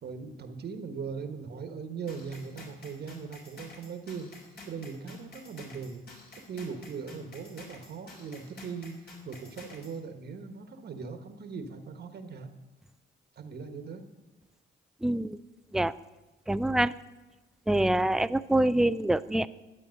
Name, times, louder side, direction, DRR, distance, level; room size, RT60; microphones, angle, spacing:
voice 1, 0.0-4.3 4.7-6.0 6.3-12.5 13.3-14.1, right 5 dB, 55° right, 7 dB, 1.3 m, -40 dB
sound 1, 2.1-10.0, left 3 dB, 55° left, 4.3 m, -50 dB
voice 2, 15.0-15.4 15.7-15.9 16.5-16.9 17.7-19.5, right 1 dB, ahead, 14 dB, 0.4 m, -25 dB
12.0 x 8.4 x 6.4 m, 1.2 s
cardioid pair, 90°, 20 cm